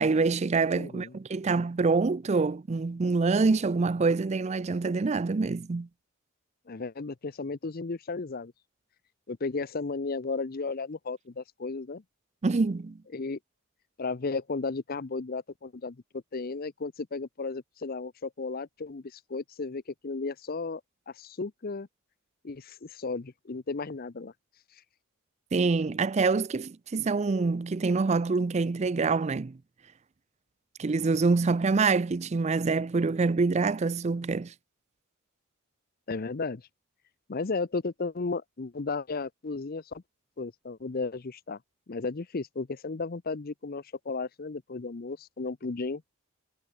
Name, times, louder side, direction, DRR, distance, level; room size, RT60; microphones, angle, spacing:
voice 1, 0.0-5.9 12.4-13.0 25.5-29.6 30.8-34.5, right 4 dB, 30° right, 0.4 m, -26 dB
voice 2, 0.7-1.1 6.7-8.5 9.3-12.0 13.1-13.4 14.0-20.8 21.1-21.9 22.4-24.3 36.1-36.6 37.3-40.0 40.4-41.6 41.9-46.0, left 4 dB, 45° left, 0.6 m, -34 dB
head